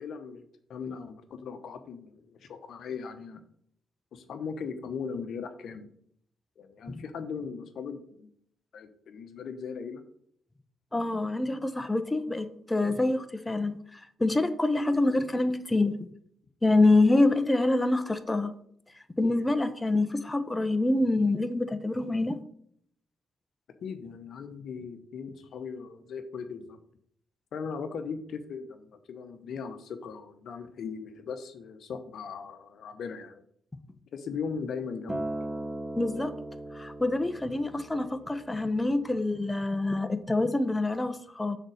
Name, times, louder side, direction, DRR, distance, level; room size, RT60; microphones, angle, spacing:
voice 1, 0.0-3.4 4.1-5.9 6.6-8.3 8.7-10.0 23.8-26.8 27.5-33.4 34.1-35.3, left 5 dB, 65° left, 8 dB, 1.0 m, -38 dB
voice 2, 10.9-15.9 16.6-18.5 19.2-22.4 36.0-36.3 36.7-41.6, left 2 dB, 20° left, 10 dB, 1.0 m, -26 dB
Acoustic guitar, 35.1-39.4 40.2-40.3, right 1 dB, 10° right, 0.7 m, -38 dB
6.5 x 4.5 x 6.5 m, 0.65 s
hypercardioid pair, 45°, 0 cm